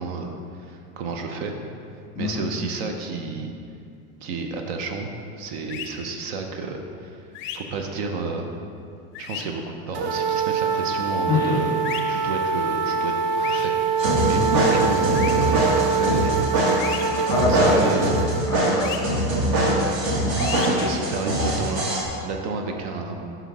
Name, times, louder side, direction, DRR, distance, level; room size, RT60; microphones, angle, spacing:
voice 1, 0.0-1.5 2.2-3.5 4.2-5.1 5.4-7.2 7.5-8.5 9.2-11.8 12.1-13.8 14.2-16.5 17.2-18.1 18.8-18.9 19.8-19.9 20.6-23.4, right 4 dB, 70° right, 3 dB, 0.7 m, -31 dB
voice 2, 2.1-2.5 11.3-11.6 12.1-12.2 14.3-14.6 16.7-17.8 18.5-18.9 20.3-20.9, left 2 dB, 10° left, -4 dB, 1.0 m, -26 dB
sound 1, 5.7-5.9 7.3-7.6 9.1-9.4 11.8-12.0 13.4-13.7 15.1-15.3 16.8-17.0 18.8-19.0 20.4-20.7, left 11 dB, 35° left, 0.4 m, -33 dB
sound 2, 9.9-18.4, right 6 dB, 35° right, 0.4 m, -24 dB
sound 3, 14.0-22.0, right 1 dB, 55° right, 1.3 m, -23 dB
5.7 x 5.6 x 3.6 m, 2.5 s
supercardioid pair, 155°, 34 cm